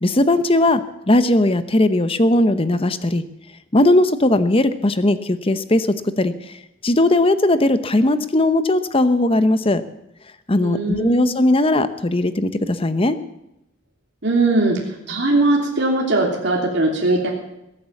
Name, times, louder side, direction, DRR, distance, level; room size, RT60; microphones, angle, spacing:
voice 1, 0.0-3.2 3.7-9.8 10.5-13.2, left 1 dB, 30° left, 12 dB, 0.9 m, -18 dB
voice 2, 10.6-11.3 14.2-14.8 15.1-17.3, right 2 dB, 60° right, -2 dB, 3.1 m, -19 dB
21.0 x 8.8 x 7.1 m, 0.88 s
head